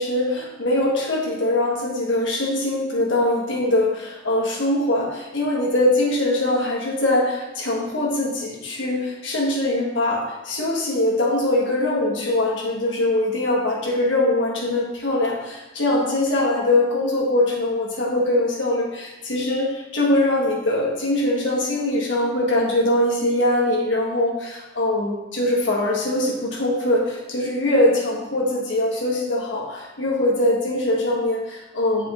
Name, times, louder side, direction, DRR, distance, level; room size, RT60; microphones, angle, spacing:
voice 1, 0.0-32.1, left 1 dB, 80° left, -2 dB, 1.6 m, -22 dB
9.1 x 4.9 x 3.0 m, 1.0 s
head